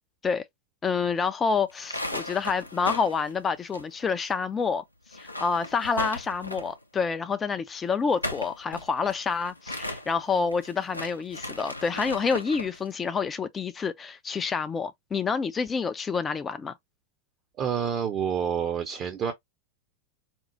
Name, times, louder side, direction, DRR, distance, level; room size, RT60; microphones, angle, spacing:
voice 1, 0.8-4.8 5.1-16.7, left 5 dB, 20° left, 0.4 m, -28 dB
sound 1, 1.7-4.3 4.6-4.7 5.1-6.8 7.9-12.8, left 1 dB, 85° left, 0.5 m, -37 dB
voice 2, 17.6-19.3, right 7 dB, 30° right, 0.6 m, -28 dB
4.4 x 2.0 x 2.7 m
figure-of-eight pair, 90°, 0 cm